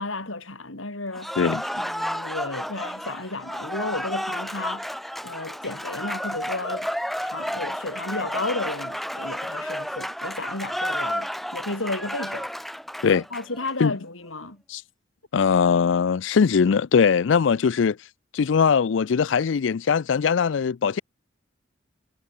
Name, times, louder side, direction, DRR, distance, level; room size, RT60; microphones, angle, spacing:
voice 1, 0.0-1.3 1.7-4.9 5.2-6.9 7.2-12.5 13.3-14.6 15.3-15.4, left 2 dB, 90° left, 6.2 m, -33 dB
Cheering / Applause, 1.1-13.7, equal, ahead, 4.1 m, -31 dB
voice 2, 15.3-18.0 18.3-21.0, left 6 dB, 70° left, 0.4 m, -20 dB
head